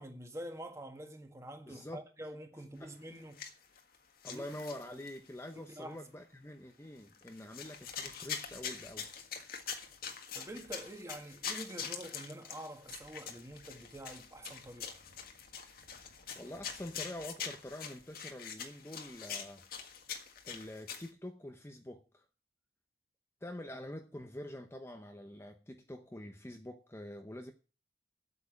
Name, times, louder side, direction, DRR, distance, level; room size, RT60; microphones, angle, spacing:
voice 1, 0.0-3.5 4.3-4.4 5.5-6.0 10.3-15.0, right 1 dB, 15° right, 1.7 m, -46 dB
voice 2, 1.7-2.0 2.8-2.9 4.2-9.1 16.3-19.7 20.4-22.2 23.4-27.5, left 1 dB, 15° left, 0.8 m, -46 dB
sound 1, 3.2-4.0 4.2-5.3 5.8-5.9 7.1-21.1, left 7 dB, 55° left, 1.6 m, -44 dB
8.4 x 7.3 x 8.4 m
head